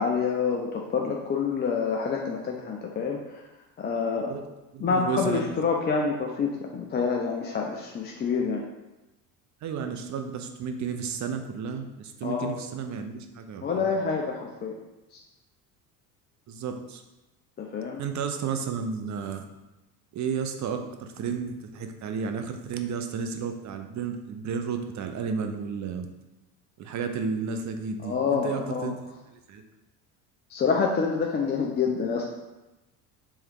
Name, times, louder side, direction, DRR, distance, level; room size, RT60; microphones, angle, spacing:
voice 1, 0.0-3.2 3.8-4.3 4.8-8.6 12.2-12.5 13.6-14.7 17.6-18.0 28.0-28.9 30.5-32.2, left 5 dB, 20° left, 0 dB, 0.5 m, -27 dB
voice 2, 4.7-5.5 9.6-13.9 16.5-17.0 18.0-19.4 20.1-26.1 26.8-29.6, right 6 dB, 35° right, 6 dB, 0.6 m, -32 dB
3.6 x 3.2 x 4.7 m, 1.0 s
hypercardioid pair, 70°, 49 cm